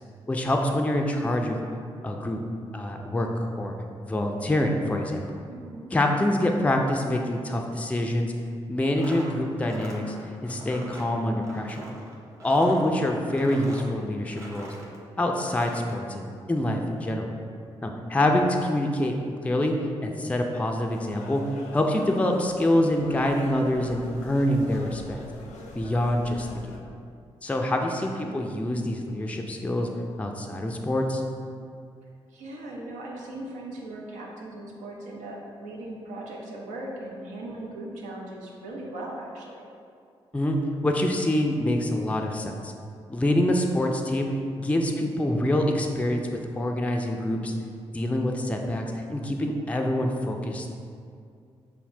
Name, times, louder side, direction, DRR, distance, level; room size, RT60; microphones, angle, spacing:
voice 1, 0.3-1.7 2.0-2.4 2.7-3.3 3.6-3.7 4.0-5.2 5.9-8.3 8.7-10.1 10.4-11.9 12.4-14.7 15.2-17.3 17.8-19.1 19.4-19.7 20.0-21.4 21.7-25.2 25.8-26.8 27.4-29.9 30.2-31.2 40.3-40.6 40.8-42.7 43.1-44.3 44.6-46.3 46.6-47.5 47.9-48.8 49.1-50.7, left 1 dB, 10° left, 2 dB, 0.4 m, -25 dB
voice 2, 5.5-5.9 18.1-18.5 27.9-28.4 32.0-39.7, right 1 dB, 75° right, -2 dB, 0.6 m, -39 dB
sound 1, 8.8-15.0 15.3-15.9, right 1 dB, 20° right, 1.0 m, -43 dB
sound 2, 20.9-26.8, left 2 dB, 75° left, 0.5 m, -44 dB
5.7 x 2.1 x 2.7 m, 2.3 s
hypercardioid pair, 40°, 13 cm